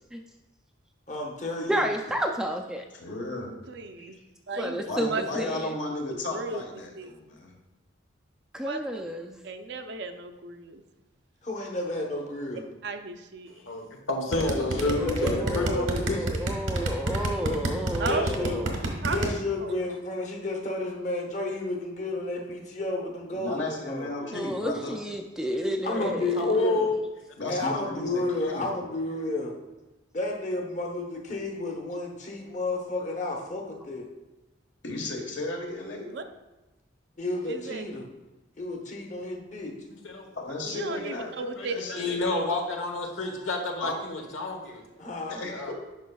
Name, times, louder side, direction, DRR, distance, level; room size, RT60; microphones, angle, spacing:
voice 1, 1.1-1.8 4.0-4.1 11.4-12.6 14.3-16.2 18.1-18.6 19.1-24.1 25.8-26.9 27.5-29.5 30.1-34.1 37.2-38.0 38.6-39.7 45.0-45.4, left 2 dB, 40° left, 0 dB, 1.0 m, -32 dB
voice 2, 1.7-2.8 4.6-5.7 8.5-9.4 14.8-18.7 24.2-26.4, equal, 5° right, 2 dB, 0.3 m, -31 dB
voice 3, 2.9-3.5 4.9-7.5 23.3-25.0 27.4-28.7 34.8-36.1 40.4-41.3 41.7-42.3 43.8-43.9 45.3-45.7, left 2 dB, 70° left, 1 dB, 1.3 m, -34 dB
voice 4, 3.7-4.2 4.5-4.8 5.1-5.5 6.3-6.6 6.9-7.1 8.6-9.0 9.4-10.8 12.8-13.6 18.0-18.3 19.0-19.3 19.6-19.7 36.1-36.2 37.5-37.9 40.7-41.8, right 3 dB, 60° right, 7 dB, 0.5 m, -34 dB
voice 5, 13.7-16.2 25.9-26.1 26.3-27.0 39.9-40.3 40.6-41.0 41.4-44.8 45.5-45.7, left 2 dB, 85° left, 2 dB, 1.1 m, -30 dB
sound 1, 14.3-19.3, right 1 dB, 85° right, 1.2 m, -28 dB
10.5 x 5.4 x 2.3 m, 1.0 s
head